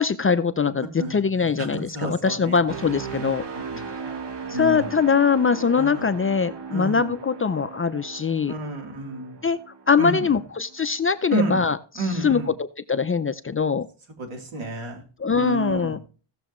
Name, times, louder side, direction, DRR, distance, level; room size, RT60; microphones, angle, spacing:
voice 1, 0.0-3.4 4.5-8.5 9.4-9.6 9.9-13.9 15.2-16.0, left 5 dB, 30° left, 11 dB, 0.5 m, -22 dB
voice 2, 1.0-1.7 1.9-2.6 3.7-3.8 4.5-4.8 5.8-6.1 6.7-7.1 8.5-9.4 10.0-10.3 11.3-11.6 12.0-12.5 14.2-15.0 15.3-16.0, right 2 dB, 75° right, 2 dB, 3.4 m, -30 dB
sound 1, 2.7-10.5 10.9-11.2, right 5 dB, 60° right, 1.8 m, -37 dB
17.0 x 6.8 x 3.1 m, 0.38 s
wide cardioid pair, 120°, 48 cm